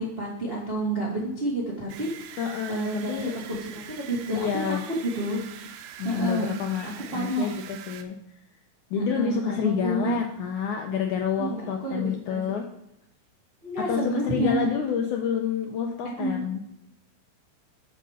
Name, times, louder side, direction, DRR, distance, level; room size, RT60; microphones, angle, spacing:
voice 1, 0.0-2.1 2.7-4.8 5.0-5.4 6.0-6.5 7.1-7.5 8.9-10.2 11.4-12.6 13.6-14.7 16.0-16.4, right 1 dB, 55° right, -5 dB, 0.6 m, -29 dB
sound 1, 1.9-8.0, right 9 dB, 80° right, 2.5 m, -43 dB
voice 2, 2.4-3.3 4.3-4.8 6.0-8.2 8.9-12.7 13.9-16.6, left 7 dB, 80° left, 2 dB, 1.8 m, -28 dB
7.8 x 5.3 x 6.5 m, 0.85 s
omnidirectional pair, 4.4 m